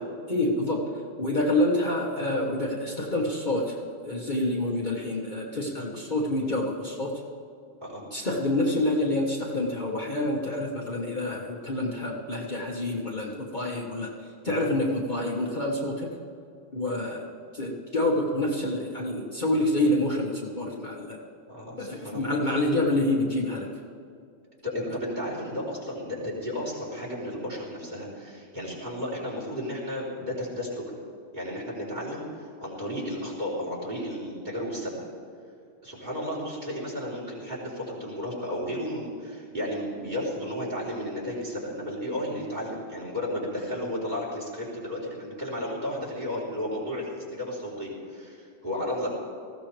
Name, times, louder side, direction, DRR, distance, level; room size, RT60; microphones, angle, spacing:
voice 1, 0.3-0.8 1.2-3.8 4.0-7.2 8.1-14.1 14.4-16.1 16.7-17.2 17.5-21.2 21.8-23.7, left 1 dB, 35° left, -3 dB, 1.5 m, -27 dB
voice 2, 21.5-22.3 24.6-30.9 31.3-35.1 35.8-49.1, left 1 dB, 35° right, -5 dB, 4.2 m, -33 dB
19.5 x 15.5 x 3.4 m, 2.4 s
omnidirectional pair, 1.4 m